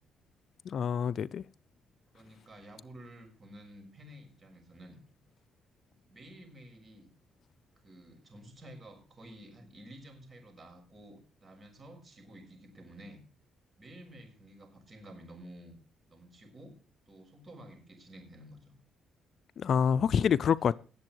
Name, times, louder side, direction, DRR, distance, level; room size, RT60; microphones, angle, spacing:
voice 1, 0.7-1.4 19.6-20.8, left 7 dB, 60° left, 0.5 m, -27 dB
voice 2, 2.1-5.0 6.1-7.1 7.8-13.2 13.8-15.8 16.1-16.7 17.1-18.7, right 1 dB, 35° right, 6.3 m, -51 dB
19.0 x 7.7 x 4.5 m
cardioid pair, 90°, 0 cm